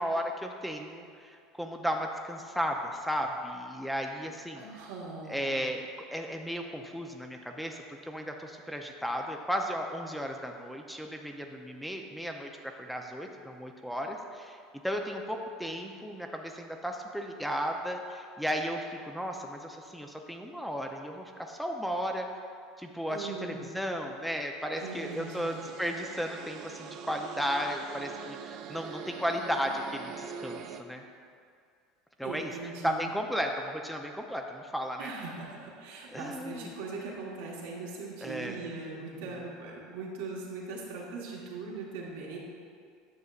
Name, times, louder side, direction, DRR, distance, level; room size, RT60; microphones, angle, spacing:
voice 1, 0.0-4.6 5.3-14.6 14.8-22.3 22.8-31.0 32.2-32.5 32.8-35.1 36.1-36.7 38.2-38.7, equal, ahead, 2 dB, 0.6 m, -34 dB
voice 2, 4.5-5.6 23.1-23.7 24.8-25.6 32.2-33.1 35.0-42.4, right 4 dB, 70° right, -3 dB, 1.4 m, -40 dB
sound 1, 24.8-30.8, right 6 dB, 55° right, 0.4 m, -43 dB
9.6 x 6.4 x 2.4 m, 2.3 s
hypercardioid pair, 80°, 0 cm